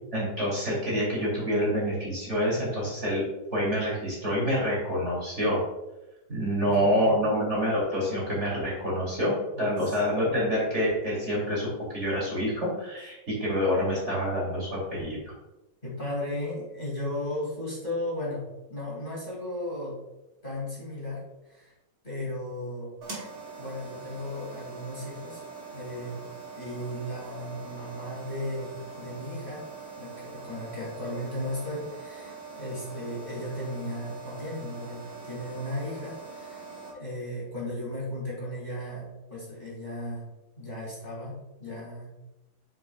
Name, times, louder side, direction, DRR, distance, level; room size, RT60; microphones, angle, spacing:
voice 1, 0.1-3.2 3.5-5.6 6.3-15.2, equal, 40° right, -5 dB, 3.0 m, -27 dB
voice 2, 6.7-7.2 9.8-10.0 15.8-20.0 20.4-21.7 22.0-22.9 23.6-25.4 25.7-26.2 26.5-29.6 30.0-36.7 36.9-40.3 40.6-42.2, left 1 dB, 25° left, -6 dB, 2.6 m, -35 dB
sound 1, 23.0-36.9, right 4 dB, 70° right, 2.8 m, -43 dB
8.7 x 6.2 x 2.3 m, 0.98 s
omnidirectional pair, 2.0 m